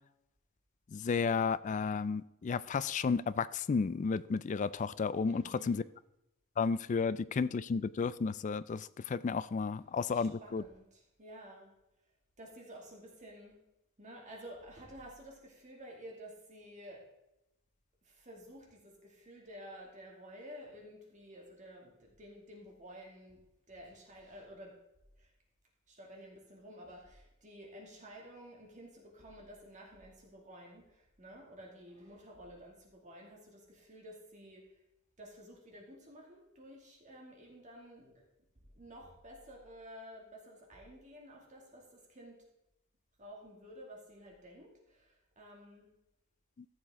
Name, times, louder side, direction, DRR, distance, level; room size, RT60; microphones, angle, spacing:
voice 1, 0.9-5.8 6.6-10.6 46.6-46.7, left 5 dB, 35° left, 16 dB, 0.3 m, -32 dB
voice 2, 5.2-5.8 10.1-11.7 12.4-13.5 14.0-17.0 18.0-23.4 23.7-24.7 25.2-25.3 25.9-34.7 35.2-38.2 38.7-42.4 43.2-46.0, equal, 35° right, -1 dB, 2.3 m, -52 dB
14.5 x 6.8 x 3.7 m, 0.87 s
head